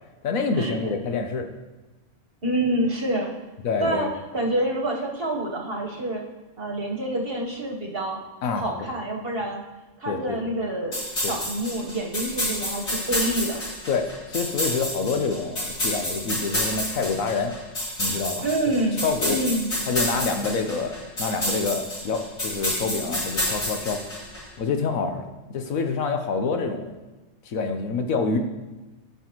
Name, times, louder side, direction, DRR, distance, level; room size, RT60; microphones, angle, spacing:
voice 1, 0.2-1.5 3.6-4.1 8.4-8.7 10.1-10.4 11.2-11.3 13.9-17.5 18.0-19.4 19.9-24.0 24.6-26.9 27.5-28.4, left 4 dB, 75° left, 5 dB, 1.2 m, -27 dB
voice 2, 2.4-3.3 3.8-4.1 4.3-6.2 6.6-8.2 8.6-9.6 10.0-11.0 11.3-13.6 18.4-19.7, right 1 dB, 45° right, 0 dB, 1.4 m, -27 dB
sound 1, 10.9-24.4, left 1 dB, 50° left, 2.9 m, -29 dB
14.5 x 5.8 x 3.0 m, 1.1 s
omnidirectional pair, 1.4 m